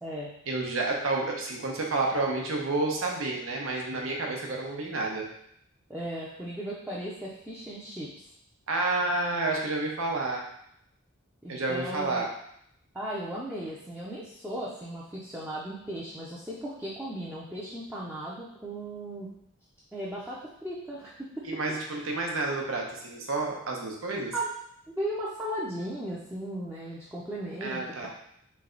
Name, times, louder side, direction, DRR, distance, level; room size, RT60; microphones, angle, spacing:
voice 1, 0.5-5.3 8.7-10.4 11.5-12.3 21.4-24.3 27.6-28.1, right 2 dB, 75° right, 0 dB, 0.8 m, -30 dB
voice 2, 5.9-8.1 11.4-12.3 12.9-19.3 19.9-21.5 24.3-24.5 24.9-28.1, right 1 dB, 5° right, -7 dB, 0.5 m, -36 dB
3.3 x 3.3 x 3.8 m, 0.72 s
head